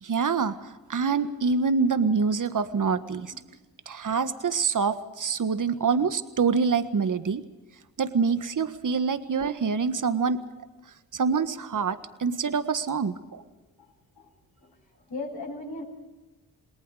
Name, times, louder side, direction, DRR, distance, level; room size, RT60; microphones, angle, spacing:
voice 1, 0.0-3.3 3.8-7.4 8.0-10.4 11.1-13.4, right 5 dB, 50° right, 11 dB, 1.6 m, -26 dB
voice 2, 15.1-15.8, left 2 dB, 65° left, -8 dB, 7.8 m, -37 dB
28.5 x 19.5 x 5.0 m, 1.2 s
supercardioid pair, 45°, 40 cm